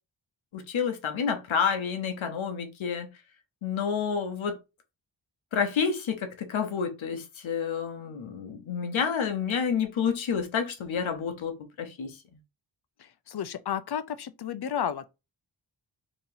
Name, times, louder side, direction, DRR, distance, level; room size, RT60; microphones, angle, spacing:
voice 1, 0.5-3.1 3.6-4.5 5.5-12.2, left 6 dB, 90° left, 0.8 m, -29 dB
voice 2, 13.0-15.1, left 9 dB, 55° left, 0.6 m, -32 dB
3.0 x 2.7 x 3.9 m
cardioid pair, 55°, 46 cm